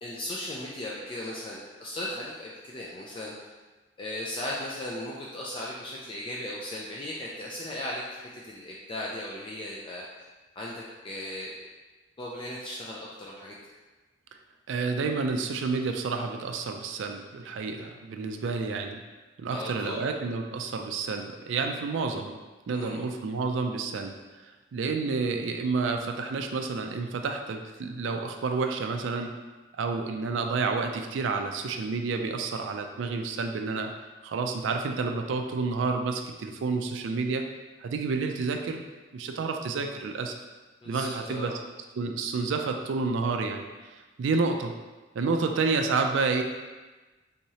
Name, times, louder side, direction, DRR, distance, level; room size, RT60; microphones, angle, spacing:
voice 1, 0.0-3.3 4.0-10.1 10.6-11.5 12.2-13.5 19.5-20.1 22.7-23.0 40.8-41.6, left 1 dB, 25° left, -5 dB, 0.3 m, -37 dB
voice 2, 14.7-19.0 19.4-22.4 22.7-24.1 24.4-29.3 29.7-33.9 34.2-37.5 37.8-38.8 39.1-40.4 40.9-41.5 42.0-43.7 44.2-44.7 45.1-46.4, right 4 dB, 70° right, 4 dB, 0.3 m, -29 dB
3.5 x 3.1 x 2.7 m, 1.2 s
head